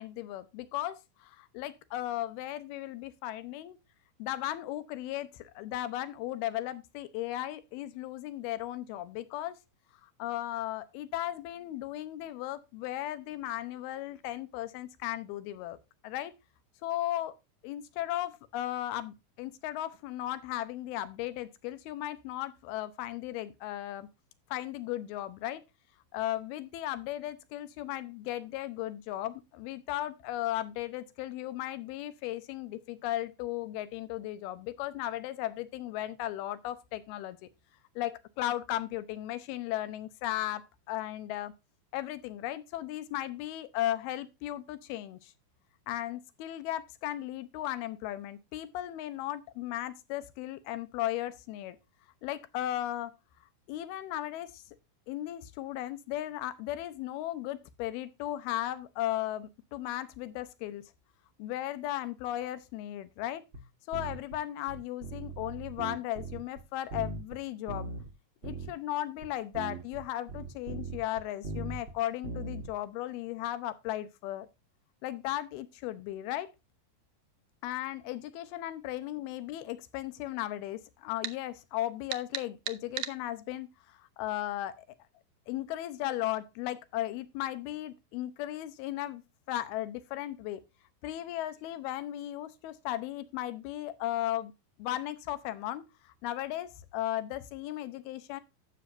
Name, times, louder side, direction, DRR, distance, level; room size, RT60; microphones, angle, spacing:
voice 1, 0.0-3.8 4.2-9.6 10.0-15.8 16.0-16.3 16.8-17.3 17.6-24.1 24.5-25.6 26.1-37.5 38.0-40.6 40.9-41.5 41.9-45.3 45.9-51.8 52.2-53.2 53.7-54.6 55.1-60.8 61.4-63.4 63.9-67.9 68.4-74.5 75.0-76.5 77.6-84.9 85.5-89.2 89.5-90.6 91.0-94.5 94.8-98.4, left 14 dB, 90° left, 2.8 m, -36 dB
sound 1, 63.5-63.6 63.9-64.4 64.7-66.6 66.9-67.4 67.7-68.1 68.4-68.7 69.2-69.3 69.5-72.0 72.2-72.7, right 3 dB, 50° right, 1.7 m, -39 dB
sound 2, 81.2-81.4 82.1-83.2, right 13 dB, 75° right, 1.8 m, -35 dB
12.0 x 7.8 x 2.6 m
omnidirectional pair, 4.3 m